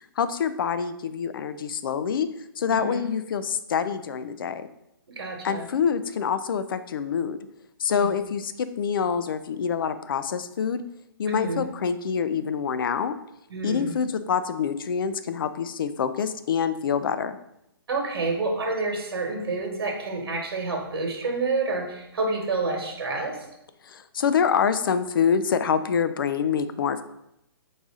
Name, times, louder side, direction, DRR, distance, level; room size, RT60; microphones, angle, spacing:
voice 1, 0.0-2.3 2.6-4.7 5.4-7.4 7.8-10.8 11.2-13.2 13.6-17.4 23.8-27.0, left 7 dB, 60° left, 12 dB, 0.4 m, -26 dB
voice 2, 2.7-3.0 5.2-5.7 7.9-8.1 11.3-11.6 13.5-13.9 17.9-23.4, right 3 dB, 80° right, 1 dB, 1.3 m, -28 dB
4.8 x 2.7 x 3.6 m, 0.83 s
hypercardioid pair, 160°, 13 cm